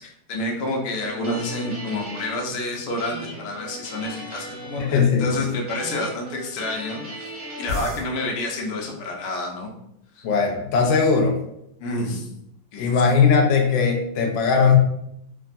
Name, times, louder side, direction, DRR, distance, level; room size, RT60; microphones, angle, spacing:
voice 1, 0.0-7.3 7.6-9.7 10.1-10.2 11.8-12.3 12.7-12.9, left 1 dB, 70° left, -1 dB, 1.0 m, -29 dB
sound 1, 0.9-2.4 3.0-5.0 5.7-8.0, left 1 dB, 55° right, 1.5 m, -36 dB
voice 2, 4.8-5.5 10.2-11.4 12.8-14.8, left 5 dB, 90° left, 2 dB, 1.3 m, -19 dB
3.3 x 2.3 x 2.5 m, 0.77 s
omnidirectional pair, 2.0 m